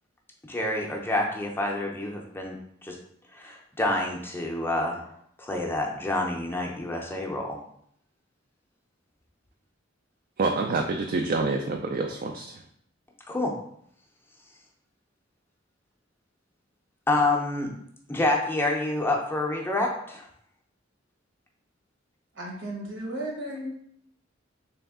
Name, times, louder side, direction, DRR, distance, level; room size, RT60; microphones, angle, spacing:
voice 1, 0.5-3.0 3.3-7.6 13.3-13.5 17.1-17.7 18.1-20.3, left 2 dB, 10° left, 0 dB, 0.5 m, -28 dB
voice 2, 10.4-12.6, right 3 dB, 45° right, 3 dB, 0.3 m, -27 dB
voice 3, 22.3-23.7, right 1 dB, 70° right, 1 dB, 1.0 m, -34 dB
3.4 x 3.1 x 3.5 m, 0.68 s
head